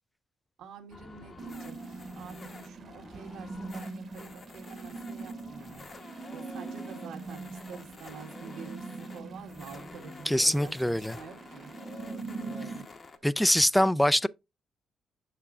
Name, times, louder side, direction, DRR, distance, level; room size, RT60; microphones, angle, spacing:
voice 1, 0.6-5.8 6.3-11.7 12.4-12.9, right 6 dB, 80° right, 1.5 m, -48 dB
sound 1, 0.9-13.2, left 3 dB, 40° left, 1.0 m, -49 dB
sound 2, 1.4-12.8, right 3 dB, 45° right, 1.1 m, -42 dB
voice 2, 10.3-11.2 13.2-14.3, equal, 5° left, 0.3 m, -24 dB
7.0 x 6.8 x 2.4 m
cardioid pair, 90°, 0 cm